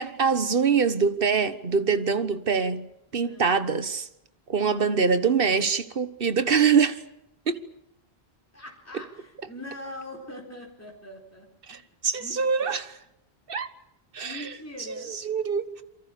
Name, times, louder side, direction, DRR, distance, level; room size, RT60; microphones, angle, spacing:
voice 1, 0.0-2.9 3.1-4.1 4.5-7.0 7.5-7.6 11.7-12.9 13.5-13.7 14.1-14.4 14.9-15.8, right 5 dB, 60° right, 1.5 m, -24 dB
voice 2, 8.5-12.7 14.2-15.1, left 1 dB, 15° left, 4.2 m, -43 dB
28.0 x 23.5 x 7.0 m
omnidirectional pair, 1.1 m